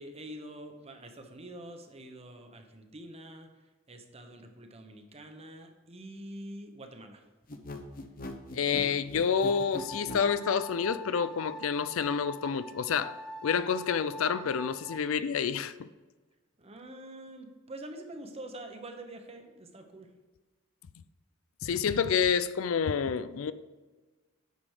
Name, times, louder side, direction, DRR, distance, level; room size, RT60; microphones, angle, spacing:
voice 1, 0.0-3.5 3.9-7.2 16.6-20.1, right 1 dB, 30° right, 1.1 m, -46 dB
sound 1, 7.5-10.3, left 1 dB, 45° left, 0.9 m, -40 dB
voice 2, 8.5-13.1 13.4-15.9 21.6-23.5, left 6 dB, 85° left, 0.4 m, -28 dB
sound 2, 9.4-15.0, equal, 5° left, 0.6 m, -44 dB
9.3 x 6.2 x 4.9 m
head